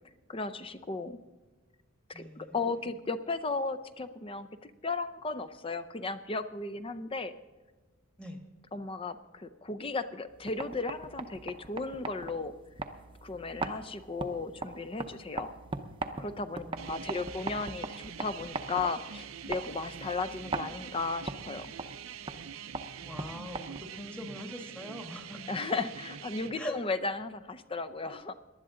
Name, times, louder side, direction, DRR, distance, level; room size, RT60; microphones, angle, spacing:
voice 1, 0.3-1.2 2.1-7.3 8.7-12.5 13.2-15.5 16.2-21.7 25.5-28.3, left 3 dB, 25° left, 13 dB, 0.6 m, -35 dB
voice 2, 2.1-2.9 8.2-8.4 16.5-17.4 23.1-25.4 26.5-26.8, left 1 dB, 5° left, 4 dB, 1.4 m, -44 dB
sound 1, 10.3-24.1, right 3 dB, 25° right, 0.7 m, -41 dB
sound 2, 16.8-26.5, right 8 dB, 70° right, 0.6 m, -45 dB
19.0 x 11.5 x 3.8 m, 1.3 s
head